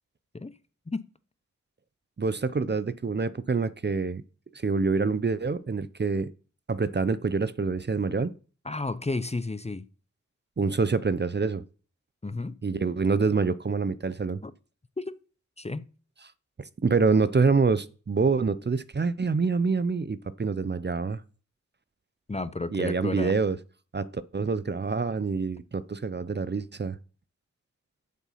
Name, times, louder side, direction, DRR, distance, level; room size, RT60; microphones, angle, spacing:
voice 1, 2.2-4.2 4.5-6.3 6.7-8.3 10.6-11.6 12.6-14.4 16.6-21.2 22.7-23.6 23.9-27.0, right 4 dB, 35° right, 0.7 m, -26 dB
voice 2, 8.6-9.8 12.2-12.6 14.4-14.5 15.0-15.2 15.6-15.9 22.3-23.3, left 3 dB, 20° left, 0.7 m, -32 dB
7.9 x 7.4 x 5.7 m
cardioid pair, 45°, 30 cm